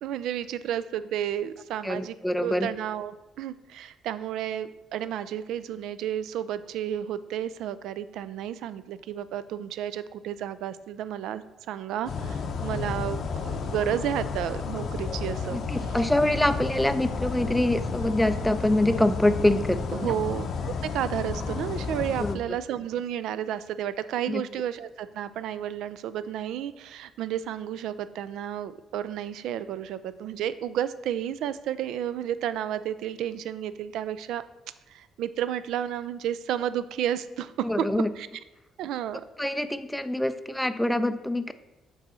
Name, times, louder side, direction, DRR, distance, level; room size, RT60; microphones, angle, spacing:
voice 1, 0.0-15.6 19.9-34.4 34.9-37.9 38.2-38.3 38.8-39.2, right 10 dB, 80° right, 14 dB, 0.3 m, -32 dB
voice 2, 1.8-2.7 15.5-20.1 22.2-22.4 24.3-24.4 37.6-38.1 39.4-41.5, left 1 dB, 5° left, 11 dB, 0.3 m, -25 dB
sound 1, 12.1-22.4, left 5 dB, 50° left, 0.6 m, -32 dB
6.8 x 4.0 x 4.2 m, 1.0 s
cardioid pair, 135°, 0 cm